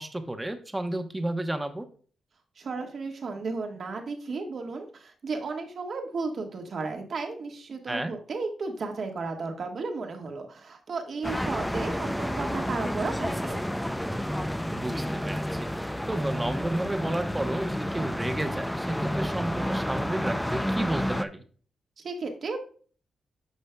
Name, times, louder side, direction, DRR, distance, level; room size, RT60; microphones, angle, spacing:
voice 1, 0.0-1.9 7.9-8.1 14.7-15.7 16.1-21.4, right 1 dB, 15° right, 7 dB, 1.0 m, -32 dB
voice 2, 2.6-13.6 22.0-22.6, right 4 dB, 60° right, 4 dB, 1.5 m, -34 dB
sound 1, 11.2-21.2, equal, 5° left, 0.4 m, -30 dB
9.7 x 6.3 x 2.3 m, 0.42 s
cardioid pair, 80°, 0 cm